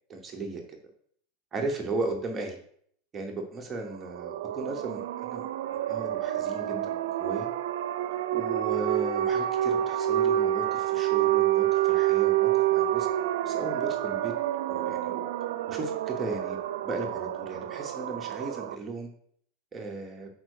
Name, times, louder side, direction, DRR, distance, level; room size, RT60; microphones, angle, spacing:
voice 1, 0.1-0.6 1.5-2.6 3.1-5.5 5.9-7.5 8.3-13.1 13.5-14.3 14.7-15.3 15.7-19.1 19.7-20.3, right 3 dB, 15° right, 2 dB, 0.9 m, -36 dB
sound 1, 4.0-18.8, right 12 dB, 90° right, 0.5 m, -28 dB
5.6 x 4.5 x 6.4 m, 0.63 s
supercardioid pair, 175°, 0 cm